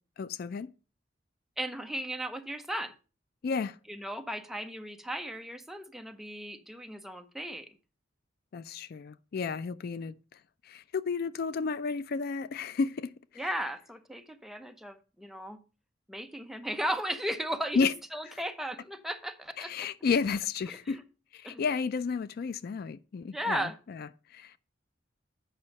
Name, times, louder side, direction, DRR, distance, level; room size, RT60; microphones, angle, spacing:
voice 1, 0.2-0.7 3.4-3.8 8.5-13.4 17.7-17.9 19.6-21.0 21.3-24.6, left 5 dB, 55° left, 0.4 m, -32 dB
voice 2, 1.6-2.9 3.9-7.7 13.4-15.6 16.1-17.8 18.1-19.9 20.9-21.0 21.4-21.6 23.3-23.8, right 1 dB, ahead, 0.7 m, -36 dB
8.9 x 5.4 x 5.3 m
head